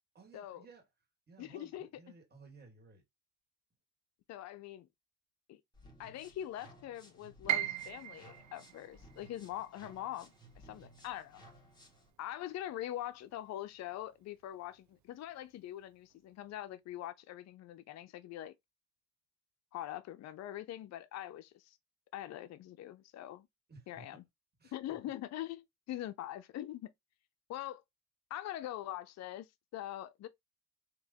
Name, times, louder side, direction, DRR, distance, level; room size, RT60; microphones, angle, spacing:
voice 1, 0.1-0.8 1.3-3.0 23.7-24.2 24.6-25.0, right 4 dB, 30° right, 1.8 m, -57 dB
voice 2, 1.4-1.9 4.3-4.9 5.5-5.6 6.0-11.4 12.2-18.5 19.7-21.8 22.1-23.5 23.9-24.2 24.7-26.9 27.5-27.8 28.3-30.3, left 13 dB, 60° left, 0.5 m, -43 dB
sound 1, 5.7-12.1, right 1 dB, 15° left, 1.8 m, -59 dB
Piano, 7.5-13.4 13.7-14.9 15.3-15.4 16.1-16.4, right 12 dB, 65° right, 0.5 m, -41 dB
3.8 x 2.8 x 2.6 m
cardioid pair, 95°, 31 cm